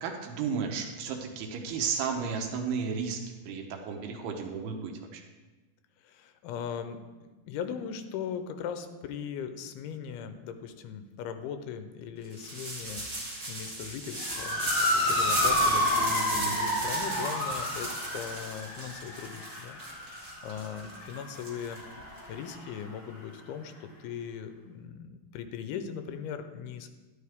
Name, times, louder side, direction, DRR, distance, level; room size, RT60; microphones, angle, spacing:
voice 1, 0.0-5.2 16.4-16.6, right 6 dB, 80° right, 4 dB, 2.9 m, -33 dB
voice 2, 6.0-26.9, left 7 dB, 80° left, 9 dB, 2.6 m, -39 dB
sound 1, 12.3-22.2, right 1 dB, 30° right, 1.5 m, -36 dB
Motor vehicle (road) / Siren, 14.2-22.8, left 1 dB, 35° left, 1.4 m, -30 dB
11.5 x 11.5 x 3.6 m, 1.2 s
omnidirectional pair, 4.6 m